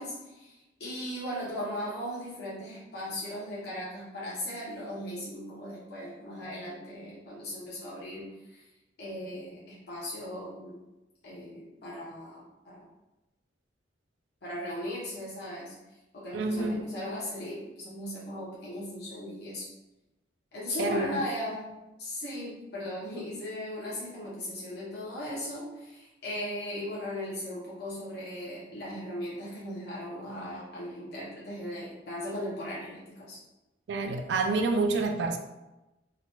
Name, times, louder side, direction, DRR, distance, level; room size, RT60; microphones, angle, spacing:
voice 1, 0.0-8.6 9.0-10.8 11.2-12.8 14.4-15.7 16.1-19.7 20.5-21.7 22.0-33.4, left 1 dB, 60° left, -7 dB, 0.8 m, -37 dB
voice 2, 16.3-16.8 20.8-21.2 33.9-35.4, right 3 dB, 65° right, 5 dB, 0.3 m, -28 dB
2.9 x 2.1 x 2.8 m, 1.0 s
head